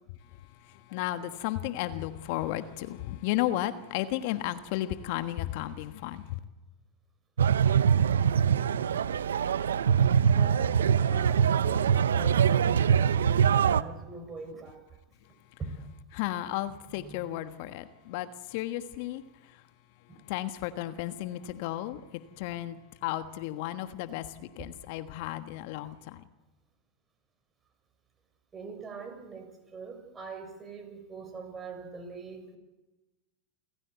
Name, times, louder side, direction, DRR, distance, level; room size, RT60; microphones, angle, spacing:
voice 1, 0.2-6.4 15.2-15.6 16.1-19.7 20.0-26.2, left 14 dB, 60° left, 1.3 m, -34 dB
sound 1, 7.4-13.8, right 8 dB, 80° right, 0.7 m, -23 dB
voice 2, 10.3-14.8 15.6-15.9 16.9-17.3 20.1-20.2 28.5-32.6, right 4 dB, 25° right, 6.3 m, -43 dB
29.0 x 15.0 x 8.1 m
hypercardioid pair, 90°, 0 cm